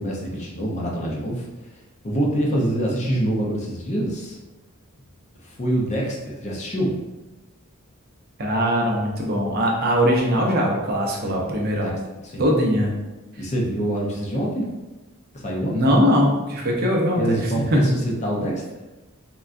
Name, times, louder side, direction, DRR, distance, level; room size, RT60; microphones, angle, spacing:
voice 1, 0.0-1.4 2.0-4.4 5.4-6.9 11.2-11.9 12.2-12.5 13.4-14.7 15.3-15.7 17.2-18.6, right 1 dB, 35° left, -2 dB, 0.5 m, -25 dB
voice 2, 8.4-12.0 12.4-12.9 15.7-17.9, equal, 45° right, -1 dB, 0.6 m, -21 dB
3.7 x 2.2 x 2.4 m, 1.1 s
head